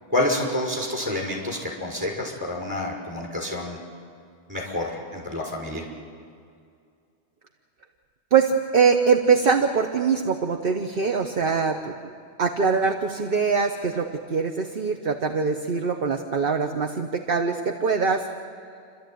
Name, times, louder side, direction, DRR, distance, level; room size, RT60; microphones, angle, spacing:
voice 1, 0.1-3.8 4.5-5.9, left 1 dB, 15° right, -2 dB, 5.9 m, -28 dB
voice 2, 8.3-12.1 12.4-18.2, right 5 dB, 55° right, 4 dB, 1.2 m, -23 dB
29.5 x 13.0 x 9.3 m, 2.3 s
omnidirectional pair, 1.2 m